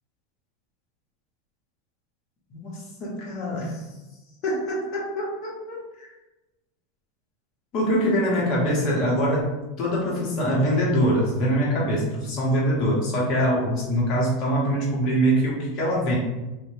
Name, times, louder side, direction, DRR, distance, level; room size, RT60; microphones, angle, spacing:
voice 1, 3.0-3.8 4.4-6.1 7.7-16.2, equal, 50° left, -4 dB, 0.9 m, -24 dB
2.9 x 2.2 x 2.6 m, 1.0 s
hypercardioid pair, 95°, 0 cm